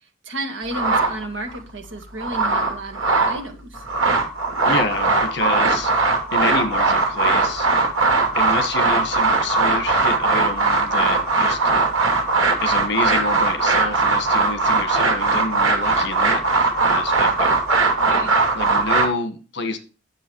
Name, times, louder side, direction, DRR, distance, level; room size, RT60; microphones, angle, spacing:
voice 1, 0.2-3.8 18.0-18.3, right 2 dB, 65° right, 2.0 m, -32 dB
sound 1, 0.7-1.6 2.0-3.4 3.7-19.1, right 3 dB, 85° right, 2.7 m, -19 dB
voice 2, 4.6-5.9 6.3-7.7 8.0-8.1 8.3-11.6 11.9-12.0 12.6-16.4 16.9-18.0 18.5-19.8, left 3 dB, 55° left, 1.5 m, -28 dB
9.8 x 7.5 x 4.6 m
head